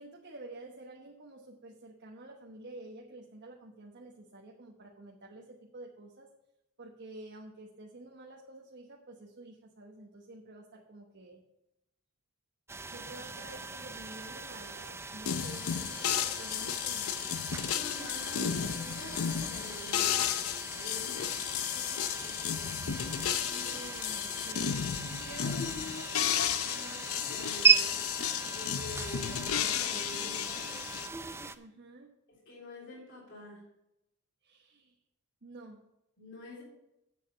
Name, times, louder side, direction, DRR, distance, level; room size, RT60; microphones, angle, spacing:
voice 1, 0.0-6.3 6.8-11.4 12.9-17.3 23.5-24.7 31.6-32.1 34.4-35.0 35.4-35.8, right 2 dB, 55° right, -1 dB, 1.2 m, -49 dB
sound 1, 12.7-31.6, right 5 dB, 10° right, 0.4 m, -36 dB
sound 2, 15.3-31.1, left 9 dB, 80° left, 0.6 m, -33 dB
voice 2, 17.7-22.7 25.0-26.1 26.6-28.0 28.5-30.7 32.5-33.6 36.2-36.6, left 1 dB, 60° left, -4 dB, 3.2 m, -46 dB
8.3 x 6.8 x 6.5 m, 0.86 s
head